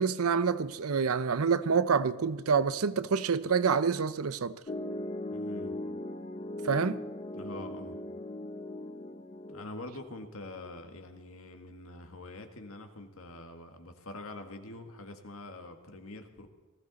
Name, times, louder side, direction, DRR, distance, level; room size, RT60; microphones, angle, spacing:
voice 1, 0.0-4.6 6.6-7.0, right 5 dB, 80° right, 0.6 m, -27 dB
Piano, 4.7-9.7, left 1 dB, 30° left, 0.7 m, -38 dB
voice 2, 5.3-5.7 7.3-8.0 9.5-16.5, left 2 dB, 70° left, 1.8 m, -45 dB
19.5 x 15.0 x 4.1 m
head